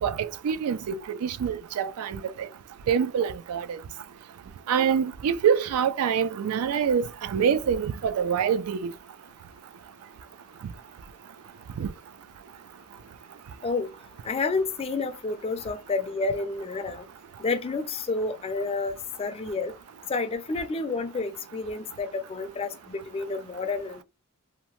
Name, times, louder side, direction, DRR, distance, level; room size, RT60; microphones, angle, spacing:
voice 1, 0.0-2.5 2.9-3.8 4.7-8.9 11.8-11.9, right 7 dB, 80° right, 0.3 m, -26 dB
voice 2, 14.2-17.1 17.4-19.7 20.1-24.0, left 3 dB, 25° left, 0.3 m, -30 dB
2.8 x 2.1 x 2.9 m
head